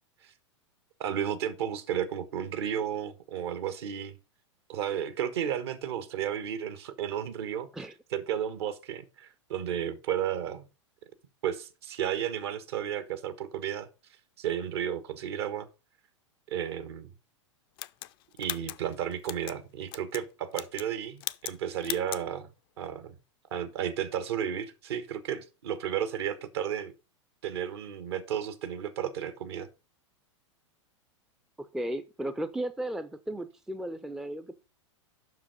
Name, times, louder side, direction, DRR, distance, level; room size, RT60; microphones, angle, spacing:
voice 1, 1.0-4.1 4.7-7.7 8.1-10.7 11.4-13.9 14.4-15.7 16.5-17.1 18.4-22.5 22.8-23.2 23.5-26.9 27.4-29.7, right 9 dB, 55° right, 1.3 m, -33 dB
sound 1, 17.8-19.6 19.9-20.2 20.5-20.9 21.2-21.6 21.8-22.2, left 17 dB, 50° left, 0.5 m, -38 dB
voice 2, 31.6-34.5, right 1 dB, 5° right, 0.5 m, -35 dB
7.5 x 6.0 x 5.0 m
figure-of-eight pair, 95°, 16 cm